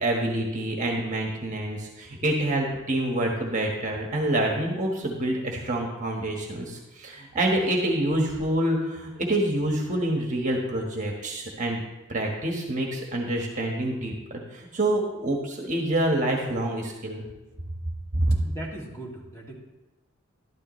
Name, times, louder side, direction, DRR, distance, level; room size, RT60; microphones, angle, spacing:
voice 1, 0.0-11.8 12.1-17.2 18.1-18.3, right 1 dB, 35° right, 0 dB, 1.5 m, -27 dB
voice 2, 18.4-19.5, right 1 dB, 15° left, -4 dB, 2.5 m, -38 dB
12.5 x 12.0 x 3.2 m, 1.0 s
head